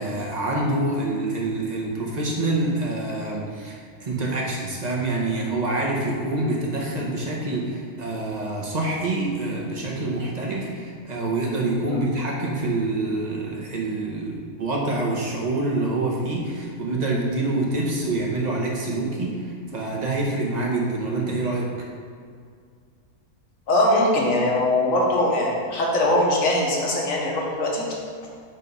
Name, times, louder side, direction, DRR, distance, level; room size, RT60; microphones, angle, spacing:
voice 1, 0.0-21.7, right 2 dB, 30° right, -2 dB, 1.1 m, -26 dB
voice 2, 23.7-27.8, left 1 dB, 60° left, -2 dB, 1.6 m, -21 dB
7.8 x 3.5 x 5.4 m, 2.1 s
omnidirectional pair, 1.7 m